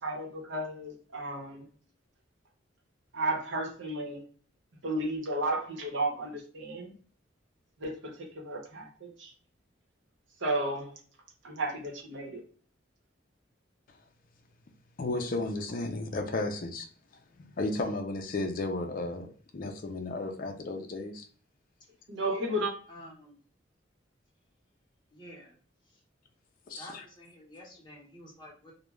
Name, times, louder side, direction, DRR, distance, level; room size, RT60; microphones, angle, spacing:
voice 1, 0.0-1.7 3.1-4.2 4.8-6.9 7.8-9.3 10.4-11.0 11.4-12.4 22.1-22.7, right 1 dB, 80° right, 0.9 m, -33 dB
voice 2, 15.0-16.9 17.4-21.3 26.7-27.0, left 2 dB, 50° left, 0.4 m, -34 dB
voice 3, 22.3-22.6 22.9-23.4 25.1-25.6 25.9-26.0 26.7-28.7, left 1 dB, 25° left, 0.8 m, -50 dB
2.3 x 2.1 x 3.0 m
head